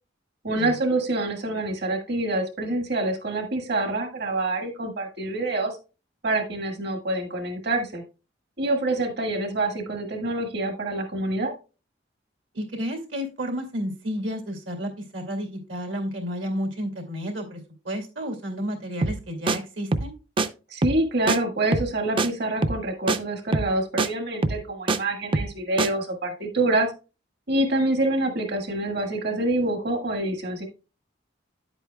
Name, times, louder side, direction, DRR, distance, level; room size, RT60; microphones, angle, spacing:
voice 1, 0.4-5.8 6.2-8.0 8.6-11.5 20.7-26.9 27.5-30.6, right 2 dB, 60° right, 4 dB, 1.7 m, -26 dB
voice 2, 12.5-17.6 17.8-20.1, equal, 80° right, 3 dB, 2.4 m, -31 dB
sound 1, 19.0-19.2 19.5-19.6 19.9-20.1 20.4-20.5 20.8-21.0 21.3-21.4 21.7-21.9 22.2-22.3 22.6-22.8 23.1-23.2 23.5-23.7 24.0-24.1 24.4-25.0 25.3-25.5 25.8-25.9, right 3 dB, 25° right, 0.4 m, -24 dB
10.0 x 8.1 x 2.2 m, 0.32 s
head